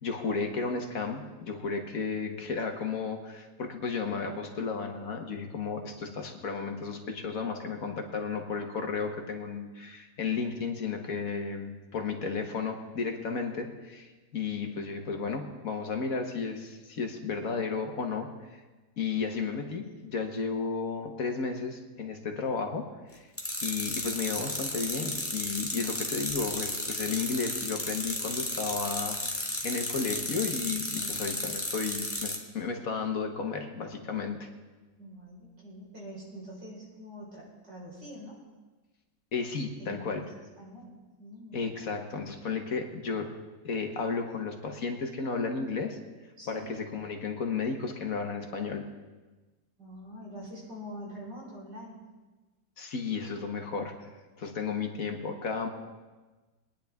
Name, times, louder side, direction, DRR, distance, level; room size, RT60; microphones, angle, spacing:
voice 1, 0.0-18.3 19.0-22.9 23.6-30.8 31.1-34.5 39.3-40.2 41.5-43.3 43.6-46.0 46.5-48.8 52.8-54.1 54.4-55.7, left 5 dB, 55° left, 4 dB, 1.6 m, -33 dB
sound 1, 23.4-32.4, left 1 dB, 10° left, 1.3 m, -33 dB
voice 2, 30.8-31.2 35.0-38.4 39.8-40.3 40.6-41.7 46.4-46.7 49.8-52.0, equal, 80° right, -4 dB, 5.2 m, -45 dB
22.5 x 10.0 x 3.5 m, 1.2 s
omnidirectional pair, 1.8 m